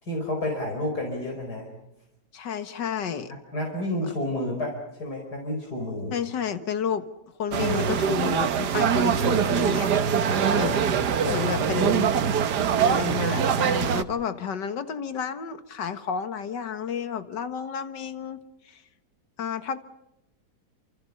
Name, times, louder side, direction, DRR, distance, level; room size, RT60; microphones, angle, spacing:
voice 1, 0.0-1.7 3.3-6.2 10.1-10.8 11.2-11.5 11.8-12.1, left 1 dB, 65° left, 1 dB, 5.3 m, -31 dB
voice 2, 2.3-3.3 6.1-7.1 7.4-9.9 10.6-10.8 11.3-12.2 12.8-18.8 19.4-19.8, left 7 dB, 90° left, 10 dB, 2.1 m, -31 dB
sound 1, 7.5-14.0, right 7 dB, 75° right, 1.7 m, -23 dB
29.5 x 28.0 x 5.5 m, 0.88 s
omnidirectional pair, 1.8 m